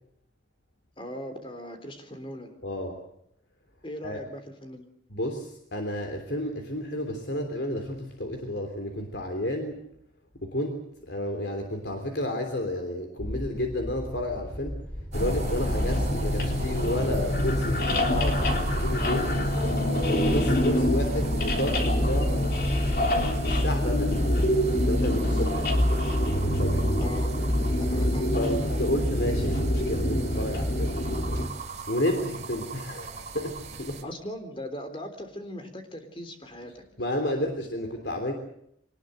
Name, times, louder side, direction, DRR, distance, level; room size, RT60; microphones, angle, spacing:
voice 1, 1.0-2.5 3.8-4.9 20.7-20.9 27.0-27.4 27.9-28.3 34.0-36.8, equal, 30° left, 7 dB, 3.4 m, -39 dB
voice 2, 2.6-3.0 4.0-4.2 5.1-9.8 10.4-14.9 15.1-19.4 20.0-22.5 23.2-24.6 24.9-25.8 26.3-26.9 28.3-30.9 31.9-34.0 37.0-38.3, left 1 dB, 70° left, 4 dB, 3.3 m, -31 dB
sound 1, 13.2-23.7, equal, 5° left, 2.9 m, -39 dB
sound 2, 15.1-31.5, left 1 dB, 55° left, 3.6 m, -25 dB
sound 3, 15.1-34.0, right 4 dB, 40° right, 3.4 m, -41 dB
24.5 x 19.5 x 7.8 m, 0.75 s
head